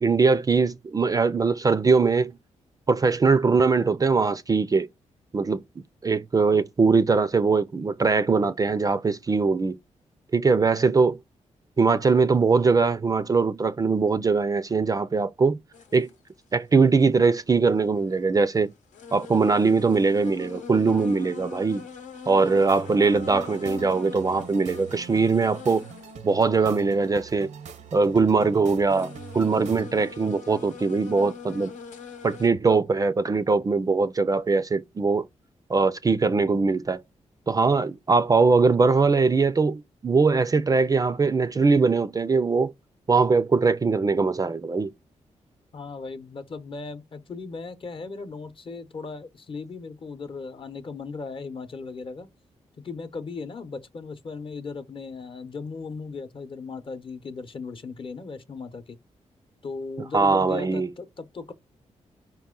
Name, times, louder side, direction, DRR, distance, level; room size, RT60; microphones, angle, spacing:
voice 1, 0.0-2.3 2.9-4.9 5.3-5.6 6.0-9.8 10.3-11.2 11.8-15.6 15.9-16.1 16.5-18.7 19.1-21.8 22.3-25.9 26.2-27.5 27.9-31.7 32.2-35.3 35.7-37.0 37.5-42.7 43.1-44.9 60.1-60.9, right 4 dB, 30° right, 0.4 m, -21 dB
sound 1, 15.7-16.1 17.8-17.9 18.4-18.5 18.9-26.3 26.6-26.7 27.3-28.2 28.7-32.5, left 5 dB, 85° left, 0.9 m, -42 dB
sound 2, 22.7-29.8, right 6 dB, 75° right, 0.6 m, -42 dB
voice 2, 45.7-52.3 52.8-59.0 59.6-61.5, left 4 dB, 45° left, 0.8 m, -37 dB
5.0 x 2.9 x 3.7 m
cardioid pair, 80°, 12 cm